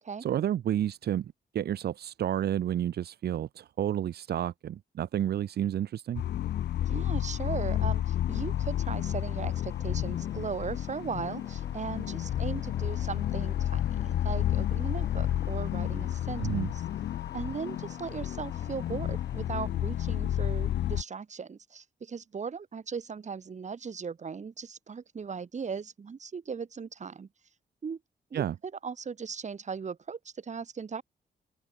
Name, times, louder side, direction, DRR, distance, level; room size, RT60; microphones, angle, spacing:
voice 1, 0.2-6.2 16.4-16.7 28.3-28.5, right 10 dB, 70° right, 0.7 m, -30 dB
sound 1, 6.1-21.0, left 11 dB, 90° left, 0.9 m, -31 dB
voice 2, 6.8-16.8 17.3-27.3 27.8-28.0 28.3-28.4 28.8-31.0, right 6 dB, 45° right, 3.5 m, -38 dB
sound 2, 8.2-19.5, left 2 dB, 20° left, 6.0 m, -52 dB
open air
cardioid pair, 110°, 17 cm